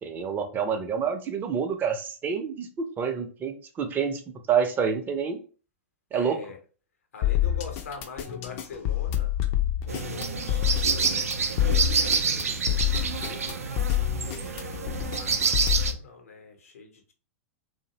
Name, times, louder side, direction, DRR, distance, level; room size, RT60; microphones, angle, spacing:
voice 1, 0.0-4.2 4.5-5.4 6.1-6.4, right 7 dB, 25° right, 0.5 m, -28 dB
voice 2, 6.1-6.6 7.1-9.3 9.8-13.8 14.2-17.1, left 5 dB, 80° left, 0.7 m, -43 dB
sound 1, 7.2-15.9, left 12 dB, 45° left, 0.4 m, -27 dB
sound 2, 9.9-15.9, right 5 dB, 85° right, 0.3 m, -28 dB
2.5 x 2.0 x 2.8 m
hypercardioid pair, 110°, 8 cm